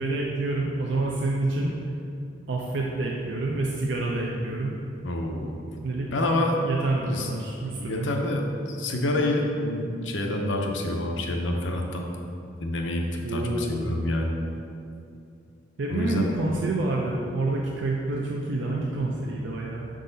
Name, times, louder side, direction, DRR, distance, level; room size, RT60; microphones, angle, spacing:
voice 1, 0.0-1.7 2.5-4.8 5.7-6.1 6.6-8.1 13.2-13.9 15.8-19.9, right 2 dB, 75° right, -2 dB, 0.5 m, -28 dB
voice 2, 5.0-5.6 6.1-6.6 7.0-7.3 7.7-12.1 12.6-14.3 15.9-16.4, left 1 dB, 85° left, 2 dB, 0.7 m, -27 dB
6.5 x 3.9 x 4.0 m, 2.6 s
head